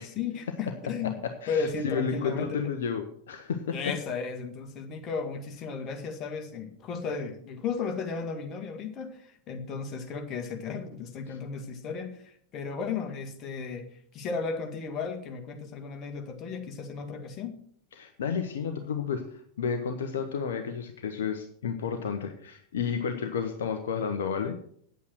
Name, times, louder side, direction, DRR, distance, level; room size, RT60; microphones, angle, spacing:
voice 1, 0.0-1.2 1.5-2.7 3.7-13.9 14.1-17.6, left 5 dB, 30° left, 3 dB, 1.9 m, -34 dB
voice 2, 1.0-3.8 11.3-11.4 17.9-24.6, left 6 dB, 60° left, 6 dB, 1.0 m, -32 dB
9.2 x 8.4 x 6.3 m, 0.64 s
figure-of-eight pair, 90°, 0 cm